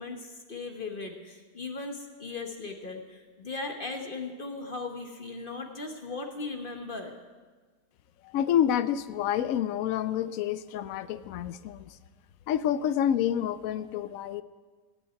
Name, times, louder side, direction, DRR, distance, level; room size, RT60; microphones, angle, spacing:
voice 1, 0.0-7.1, left 3 dB, 35° left, 3 dB, 1.1 m, -38 dB
voice 2, 8.2-12.0 12.5-14.4, left 10 dB, 70° left, 13 dB, 0.9 m, -28 dB
16.5 x 6.1 x 9.1 m, 1.4 s
omnidirectional pair, 1.8 m